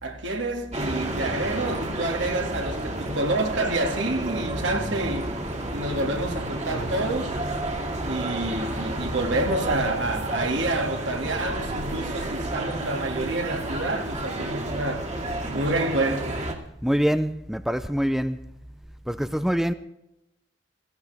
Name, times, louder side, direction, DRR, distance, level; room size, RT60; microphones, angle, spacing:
voice 1, 0.0-5.3 5.7-7.4 8.0-15.0 15.5-16.4, right 2 dB, 75° right, 2.3 m, -28 dB
sound 1, 0.7-16.5, right 1 dB, 35° right, 2.2 m, -31 dB
voice 2, 16.8-18.4 19.1-19.7, equal, ahead, 0.4 m, -24 dB
18.0 x 15.0 x 3.5 m
head